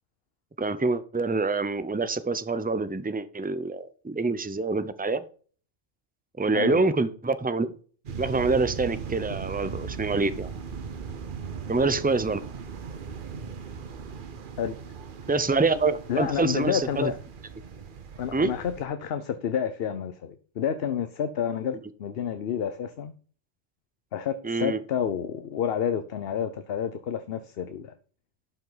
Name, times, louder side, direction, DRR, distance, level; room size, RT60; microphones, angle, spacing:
voice 1, 0.6-5.2 6.4-7.7 8.2-10.5 11.7-12.4 15.3-17.1 18.3-18.5 24.4-24.8, right 3 dB, 15° right, 0.4 m, -26 dB
voice 2, 6.5-6.9 14.6-14.7 16.1-17.2 18.2-23.1 24.1-27.9, left 8 dB, 60° left, 0.9 m, -29 dB
sound 1, 8.0-18.9, right 6 dB, 50° right, 0.9 m, -38 dB
11.5 x 5.7 x 4.0 m
omnidirectional pair, 1.2 m